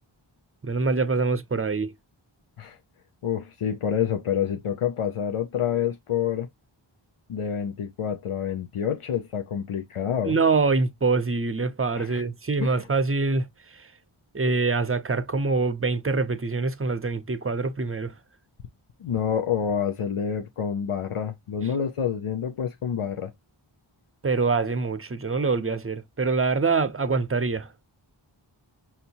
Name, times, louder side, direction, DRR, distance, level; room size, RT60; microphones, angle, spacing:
voice 1, 0.6-1.9 10.2-13.9 14.3-18.1 24.2-27.7, right 4 dB, 25° right, 0.6 m, -25 dB
voice 2, 3.2-6.5 7.3-10.4 12.0-12.2 12.6-12.8 19.0-23.3, left 8 dB, 85° left, 0.6 m, -28 dB
5.7 x 2.6 x 2.8 m
wide cardioid pair, 45°, 50 cm